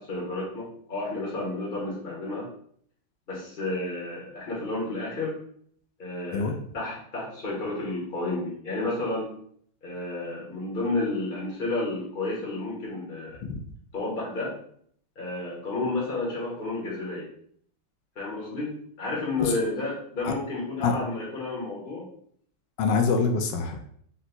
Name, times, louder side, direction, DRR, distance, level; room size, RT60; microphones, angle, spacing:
voice 1, 0.0-2.5 3.3-5.4 6.0-9.4 9.8-13.4 13.9-14.6 15.2-17.3 18.1-22.1, left 2 dB, 35° left, -4 dB, 0.9 m, -31 dB
voice 2, 22.8-23.8, left 4 dB, 75° left, 5 dB, 1.2 m, -25 dB
4.0 x 2.2 x 4.2 m, 0.62 s
omnidirectional pair, 2.1 m